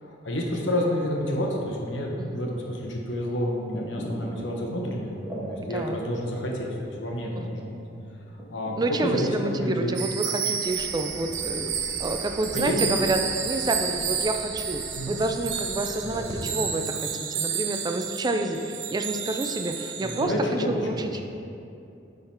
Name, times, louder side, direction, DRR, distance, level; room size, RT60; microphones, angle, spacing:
voice 1, 0.0-5.2 5.5-7.8 8.5-10.0 12.5-13.0 15.0-15.2 16.0-16.5 20.0-21.2, left 1 dB, 85° left, -1 dB, 1.1 m, -29 dB
sound 1, 3.6-11.8, right 1 dB, 5° right, 1.2 m, -42 dB
voice 2, 5.7-6.0 7.4-7.5 8.8-11.7 12.0-20.3 20.7-21.2, right 2 dB, 20° right, 6 dB, 0.3 m, -29 dB
sound 2, 10.0-20.2, right 7 dB, 70° right, 0.7 m, -31 dB
sound 3, 10.6-16.3, equal, 10° left, 1.0 m, -44 dB
9.7 x 3.9 x 4.3 m, 2.6 s
head